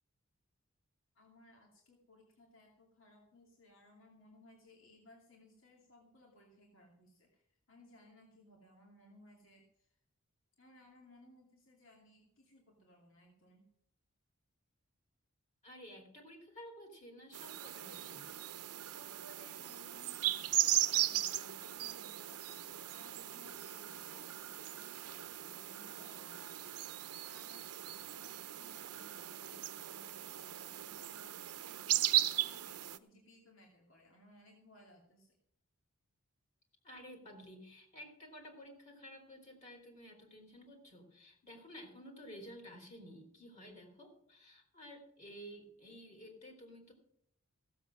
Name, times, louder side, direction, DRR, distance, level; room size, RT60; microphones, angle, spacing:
voice 1, 1.1-10.0 10.6-13.7 18.8-22.6 22.9-35.4, left 1 dB, 60° left, -1 dB, 2.7 m, -62 dB
voice 2, 15.6-18.3 36.8-46.9, equal, 30° left, 2 dB, 3.2 m, -53 dB
sound 1, 17.3-33.0, right 13 dB, 90° right, 0.7 m, -37 dB
16.0 x 7.7 x 6.2 m, 0.72 s
head